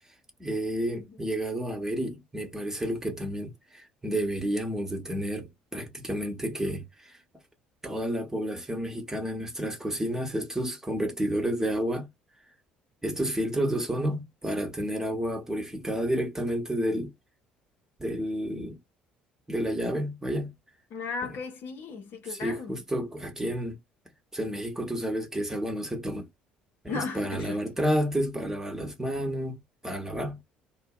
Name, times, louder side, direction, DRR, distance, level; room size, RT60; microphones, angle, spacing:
voice 1, 0.4-7.1 7.8-12.1 13.0-17.1 18.0-18.8 19.5-20.5 21.3-21.4 22.3-23.8 24.3-26.3 26.8-30.4, equal, 10° right, 1.1 m, -30 dB
voice 2, 20.9-22.7 26.9-27.7, left 4 dB, 55° left, 0.7 m, -36 dB
2.6 x 2.1 x 2.3 m
figure-of-eight pair, 55°, 4 cm